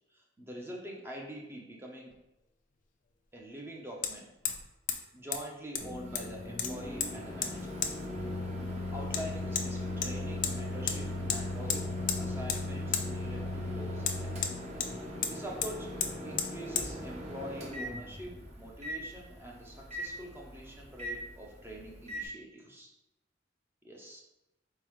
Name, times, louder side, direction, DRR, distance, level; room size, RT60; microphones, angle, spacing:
voice 1, 0.1-2.1 3.3-4.3 5.1-7.7 8.9-11.8 12.2-14.4 14.9-15.9 16.2-22.9 23.8-24.2, equal, 15° right, -2 dB, 0.7 m, -45 dB
Hammer, 2.1-2.2 4.0-4.1 4.4-4.6 4.9-5.0 5.3-5.4 5.7-6.3 6.6-7.1 7.4-7.5 7.8-7.9 9.1-9.2 9.6-9.7 10.0-10.5 10.9-11.0 11.3-11.4 11.7-12.2 12.5-12.6 12.9-13.1 14.0-14.9 15.2-15.3 15.6-15.7 16.0-16.1 16.4-16.5 16.8-16.9, left 7 dB, 45° left, 0.5 m, -32 dB
Microwave oven, 5.8-22.3, left 1 dB, 35° right, 0.9 m, -38 dB
4.5 x 3.8 x 3.1 m, 0.90 s
head